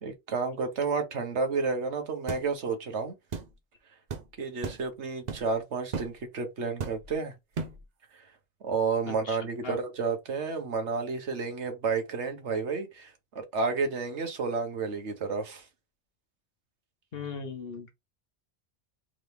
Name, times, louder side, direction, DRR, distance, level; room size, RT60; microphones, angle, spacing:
voice 1, 0.0-3.2 4.4-7.3 8.1-8.2 8.6-15.6, right 4 dB, 85° right, 1.4 m, -31 dB
sound 1, 2.3-2.5 3.3-3.5 4.1-4.3 4.6-4.9 5.3-5.5 5.9-6.2 6.8-7.1 7.5-7.8, right 5 dB, 45° right, 0.7 m, -35 dB
voice 2, 9.0-9.4 9.6-9.8 17.1-17.9, left 5 dB, 60° left, 1.2 m, -38 dB
3.7 x 3.0 x 3.4 m
omnidirectional pair, 1.1 m